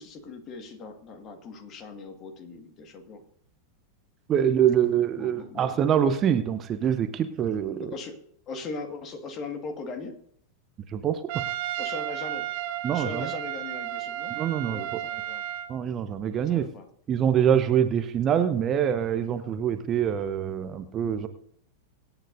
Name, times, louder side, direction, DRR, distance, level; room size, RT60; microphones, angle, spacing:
voice 1, 0.0-3.2 4.7-5.7 7.8-8.2 8.5-10.2 11.8-12.5 12.9-14.4 14.6-15.4 16.3-16.9, left 3 dB, 30° left, 6 dB, 1.9 m, -39 dB
voice 2, 4.3-7.9 10.9-11.4 12.8-13.3 14.4-15.0 15.7-16.7 17.1-21.3, right 9 dB, 30° right, 10 dB, 0.8 m, -25 dB
Trumpet, 11.3-15.7, right 13 dB, 50° right, 1.4 m, -33 dB
25.0 x 9.0 x 2.7 m, 0.69 s
figure-of-eight pair, 90°, 0 cm